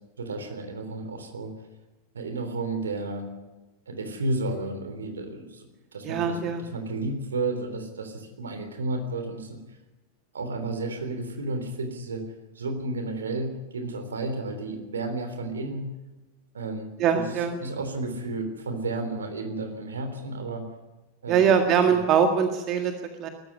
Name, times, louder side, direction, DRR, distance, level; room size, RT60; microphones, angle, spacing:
voice 1, 0.2-1.5 2.1-3.3 3.9-9.6 10.3-12.2 12.6-15.9 16.5-20.7 21.2-21.5 21.9-22.0, right 2 dB, 70° right, 8 dB, 3.5 m, -32 dB
voice 2, 6.0-6.6 17.0-17.6 21.3-22.9 23.2-23.3, right 7 dB, 35° right, 6 dB, 1.9 m, -22 dB
20.5 x 14.0 x 9.7 m, 1.1 s
figure-of-eight pair, 90°, 0 cm